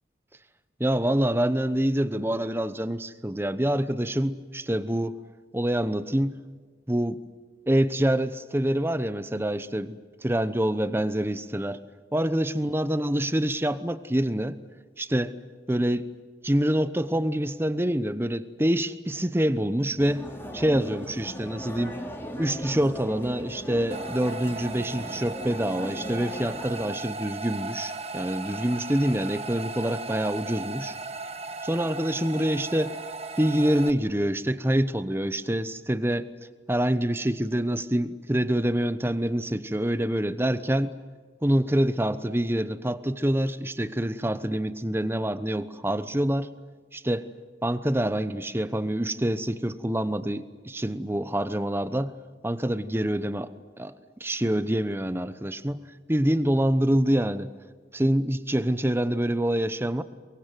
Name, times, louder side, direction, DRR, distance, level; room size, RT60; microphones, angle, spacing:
voice 1, 0.8-5.2 5.5-6.4 6.9-7.2 7.7-11.8 12.1-14.6 15.0-15.3 15.7-16.1 16.4-20.3 20.5-22.0 22.4-31.0 31.6-33.0 33.4-36.3 36.7-40.9 41.4-46.5 46.9-47.3 47.6-52.1 52.4-53.5 53.8-53.9 54.2-55.8 56.1-57.5 57.9-60.0, right 1 dB, 15° right, 13 dB, 0.9 m, -26 dB
sound 1, 20.0-26.8, equal, 15° left, 3.0 m, -38 dB
sound 2, 23.9-33.9, right 3 dB, 35° right, 1.3 m, -37 dB
23.5 x 23.0 x 9.3 m, 1.5 s
head